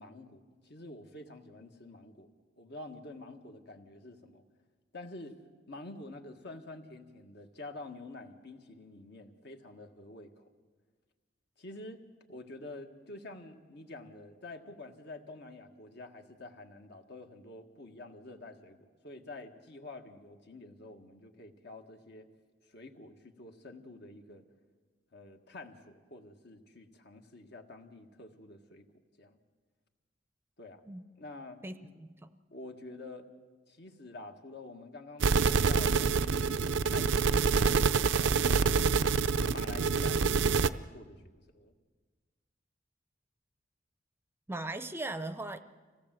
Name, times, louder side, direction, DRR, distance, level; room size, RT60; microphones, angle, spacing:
voice 1, 0.0-2.3 2.6-4.4 4.9-5.4 5.7-10.5 11.6-12.0 12.3-22.3 22.7-24.4 25.1-28.9 29.2-29.4 30.6-30.8 31.2-31.6 32.5-33.3 33.7-36.2 36.8-41.7, left 2 dB, 65° left, 5 dB, 1.7 m, -48 dB
voice 2, 31.6-32.4 44.5-45.6, right 2 dB, 15° right, 11 dB, 0.6 m, -39 dB
sound 1, 35.2-40.7, right 5 dB, 90° right, 0.6 m, -26 dB
26.0 x 17.0 x 7.7 m, 1.5 s
head